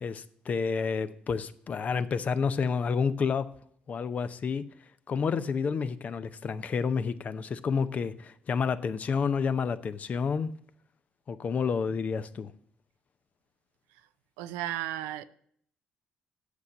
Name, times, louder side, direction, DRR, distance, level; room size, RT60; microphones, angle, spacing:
voice 1, 0.0-3.5 3.9-4.6 5.1-10.5 11.3-12.5, left 5 dB, 50° left, 0.6 m, -29 dB
voice 2, 14.4-15.3, right 13 dB, 85° right, 0.4 m, -34 dB
8.3 x 6.5 x 7.0 m
supercardioid pair, 60°, 3 cm